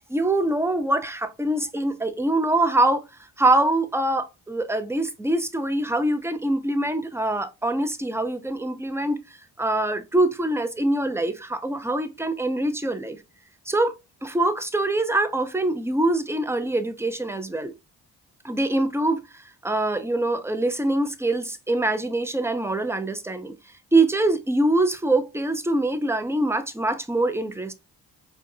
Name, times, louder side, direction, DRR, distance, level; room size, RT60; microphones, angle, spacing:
voice 1, 0.1-3.0 3.4-9.2 9.6-13.2 13.7-13.9 14.2-17.7 18.4-23.5 23.9-27.7, right 2 dB, 5° right, 0.6 m, -24 dB
4.4 x 2.4 x 2.6 m
supercardioid pair, 50°, 43 cm